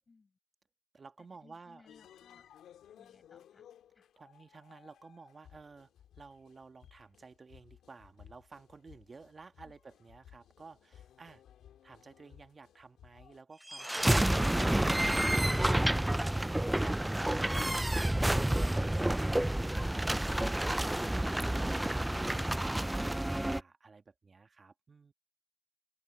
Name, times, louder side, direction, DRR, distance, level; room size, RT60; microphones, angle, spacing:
voice 1, 0.1-0.4 1.4-2.5 3.0-3.7 3.9-4.1 9.6-9.7, left 4 dB, 30° left, 7.0 m, -62 dB
voice 2, 0.9-1.9 4.2-11.4 11.8-25.1, right 4 dB, 30° right, 2.0 m, -54 dB
sound 1, 1.9-13.4, left 10 dB, 75° left, 2.2 m, -59 dB
sound 2, 13.7-23.6, right 1 dB, 10° right, 0.4 m, -29 dB
open air
cardioid pair, 90°, 0 cm